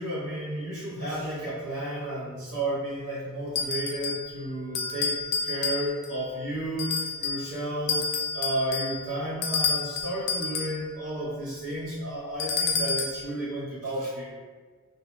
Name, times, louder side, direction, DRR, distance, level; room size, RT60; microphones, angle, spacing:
voice 1, 0.0-5.1 5.4-8.0 8.3-14.3, right 1 dB, 70° right, -9 dB, 1.0 m, -32 dB
sound 1, 3.6-4.3 4.7-6.2 6.8-7.5 7.9-10.8 12.4-13.3, left 5 dB, 50° left, 0.3 m, -29 dB
2.5 x 2.2 x 3.0 m, 1.5 s
head